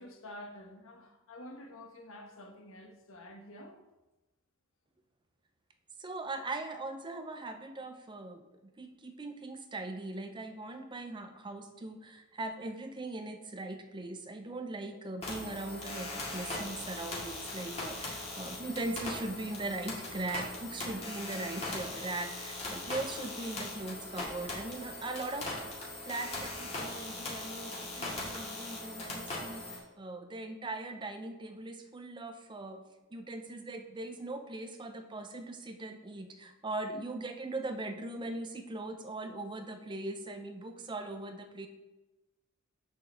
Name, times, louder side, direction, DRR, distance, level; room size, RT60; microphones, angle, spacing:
voice 1, 0.0-3.8 11.2-11.4 36.9-37.0, left 1 dB, 65° left, 3 dB, 1.1 m, -49 dB
voice 2, 6.0-25.7 26.0-32.8 33.1-41.7, right 2 dB, 20° right, 7 dB, 0.5 m, -40 dB
sound 1, 15.2-29.8, left 2 dB, 30° left, 2.1 m, -40 dB
7.5 x 7.3 x 3.4 m, 1.1 s
head